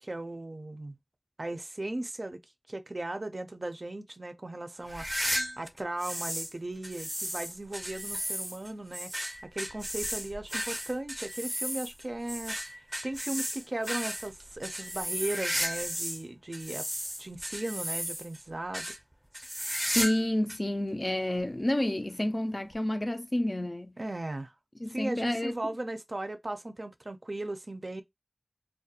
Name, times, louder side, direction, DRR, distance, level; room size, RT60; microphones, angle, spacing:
voice 1, 0.0-1.0 1.4-2.4 2.7-5.3 5.6-16.8 17.2-18.9 24.0-24.5 24.9-28.0, right 2 dB, 70° right, 0.4 m, -37 dB
sound 1, 4.9-6.5 6.8-16.2 16.5-18.4 18.7-19.0 19.3-20.2 20.5-20.6 21.4-21.5 22.7-22.8, equal, 10° right, 0.5 m, -34 dB
voice 2, 19.9-23.9 24.8-25.6, left 1 dB, 45° left, 0.3 m, -29 dB
2.3 x 2.1 x 2.7 m
wide cardioid pair, 45°, 0 cm